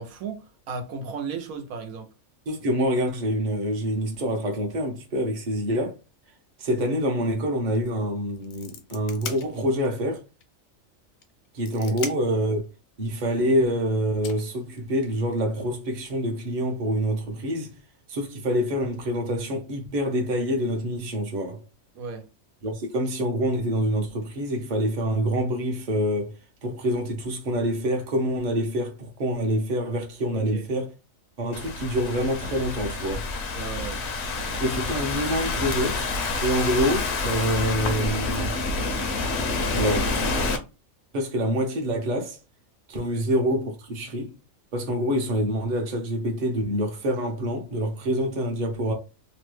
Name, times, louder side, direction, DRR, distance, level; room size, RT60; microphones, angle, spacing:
voice 1, 0.0-2.1 11.9-12.0 21.9-22.2 30.3-30.7 33.5-34.0 43.0-43.2, right 4 dB, 90° right, 1.1 m, -35 dB
voice 2, 2.5-6.0 6.6-10.2 11.5-12.6 13.0-17.8 18.1-21.6 22.6-26.4 26.6-30.9 31.4-33.3 34.6-36.0 36.4-38.6 39.7-40.4 41.1-42.4 42.9-44.4 44.7-48.9, equal, 40° right, 0.8 m, -26 dB
sound 1, 7.7-7.9 8.2-10.0 10.4-10.5 11.2-12.4 13.6-13.7 14.2-15.2, left 6 dB, 80° left, 1.0 m, -39 dB
Thunderstorm / Rain, 31.5-40.6, left 3 dB, 65° left, 0.8 m, -28 dB
3.0 x 2.1 x 3.1 m
omnidirectional pair, 1.4 m